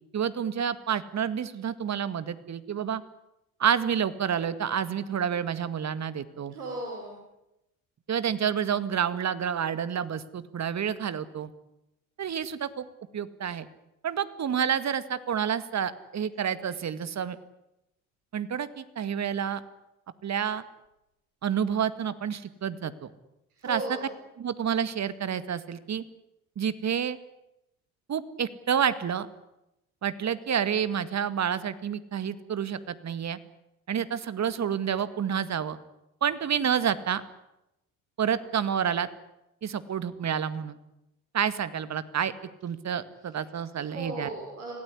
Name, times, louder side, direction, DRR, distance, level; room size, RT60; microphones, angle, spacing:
voice 1, 0.1-3.0 3.6-6.5 8.1-11.5 12.2-12.9 13.1-13.7 14.0-17.4 18.3-19.6 20.2-20.6 21.4-23.1 23.6-24.0 24.4-26.0 26.6-27.2 28.1-29.3 30.0-33.4 33.9-35.8 36.2-37.2 38.2-39.1 39.6-40.8 41.3-42.3 42.6-44.3, right 8 dB, 40° right, 14 dB, 2.1 m, -29 dB
voice 2, 6.5-7.2 23.6-24.0 43.7-44.7, right 2 dB, 85° right, -1 dB, 6.1 m, -36 dB
26.0 x 17.5 x 9.9 m, 0.89 s
hypercardioid pair, 60°, 43 cm